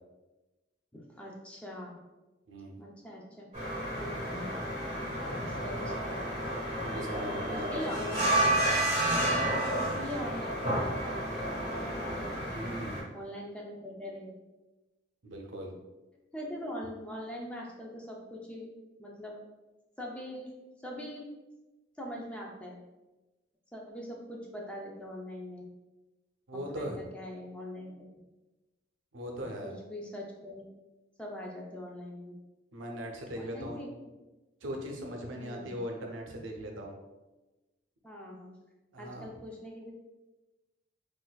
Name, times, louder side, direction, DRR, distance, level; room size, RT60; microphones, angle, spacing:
voice 1, 0.9-2.0 2.8-3.5 4.0-4.5 5.4-6.2 7.5-8.4 9.4-12.1 13.1-14.3 16.3-18.7 19.0-19.4 20.0-20.5 20.8-21.3 22.0-22.8 23.7-25.6 26.5-27.9 29.6-30.7 31.2-32.4 33.4-33.9 35.4-35.8 38.0-38.5 39.0-39.9, equal, 5° left, -2 dB, 0.4 m, -42 dB
sound 1, 3.5-13.0, right 1 dB, 30° right, 1.3 m, -31 dB
voice 2, 6.9-7.8 12.5-13.0 15.2-15.7 26.5-27.0 29.1-29.7 32.7-33.8 34.6-37.0 38.9-39.3, equal, 85° right, 1 dB, 0.6 m, -39 dB
4.0 x 2.5 x 2.2 m, 1.1 s
head